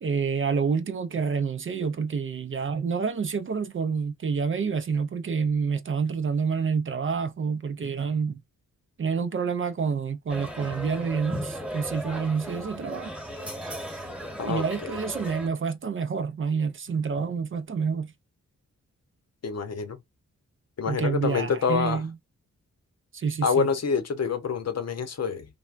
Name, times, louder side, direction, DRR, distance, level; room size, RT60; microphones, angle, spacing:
voice 1, 0.0-8.4 9.0-13.1 14.4-18.1 20.9-22.1 23.1-23.7, right 5 dB, 40° right, 0.5 m, -28 dB
sound 1, 10.3-15.5, equal, 5° right, 1.2 m, -36 dB
voice 2, 14.4-15.0 19.4-20.0 20.8-22.0 23.4-25.5, left 5 dB, 55° left, 0.7 m, -27 dB
3.3 x 2.2 x 2.4 m
cardioid pair, 65°, 31 cm